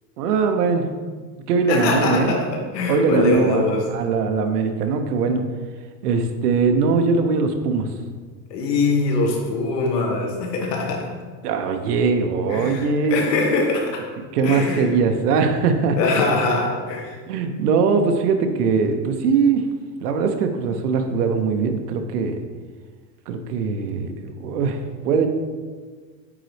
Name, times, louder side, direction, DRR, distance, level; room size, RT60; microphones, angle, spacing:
voice 1, 0.2-0.9 1.5-2.4 2.9-5.5 6.0-7.9 11.4-13.2 14.3-16.0 17.3-19.7 20.0-22.4 23.3-25.3, right 5 dB, 65° right, 6 dB, 0.9 m, -21 dB
voice 2, 1.7-3.9 8.5-11.1 12.5-14.1 14.4-14.9 15.9-17.2, left 3 dB, 75° left, 0 dB, 1.7 m, -22 dB
8.8 x 4.0 x 3.3 m, 1.5 s
supercardioid pair, 165°, 50 cm